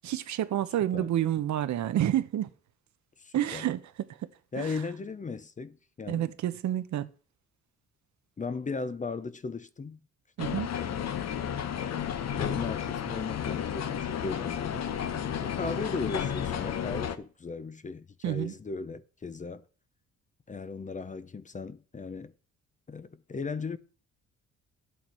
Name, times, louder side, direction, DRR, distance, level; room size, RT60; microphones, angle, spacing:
voice 1, 0.0-2.5 3.3-3.8 4.6-4.7 6.1-7.1 10.4-10.7 18.2-18.5, right 12 dB, 65° right, 0.9 m, -29 dB
voice 2, 3.2-3.7 4.5-6.3 8.4-10.0 10.7-11.3 12.3-14.9 15.4-19.6 20.5-22.3 22.9-23.8, left 4 dB, 25° left, 0.7 m, -37 dB
sound 1, 10.4-17.2, left 9 dB, 60° left, 1.0 m, -32 dB
11.5 x 8.4 x 4.4 m
cardioid pair, 90°, 30 cm